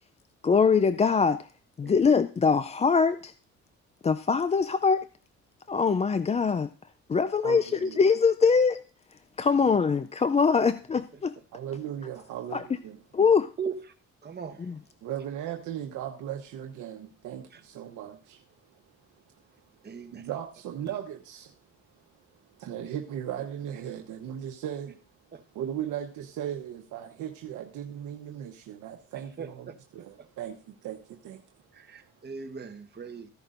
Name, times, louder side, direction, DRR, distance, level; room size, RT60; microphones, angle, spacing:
voice 1, 0.4-1.5 1.8-3.3 4.0-5.0 5.7-6.7 7.1-8.8 9.4-11.3 12.5-12.6 13.1-13.5 14.7-14.8, left 5 dB, 20° left, 0.4 m, -23 dB
voice 2, 7.4-8.0 11.5-13.0 15.0-18.4 20.1-21.5 22.6-25.0 25.5-31.4, right 10 dB, 85° right, 1.1 m, -37 dB
voice 3, 14.2-14.7 17.5-17.6 19.8-20.2 25.3-25.4 29.4-29.8 31.7-33.3, right 6 dB, 35° right, 1.2 m, -38 dB
15.0 x 10.5 x 2.6 m
cardioid pair, 90°, 30 cm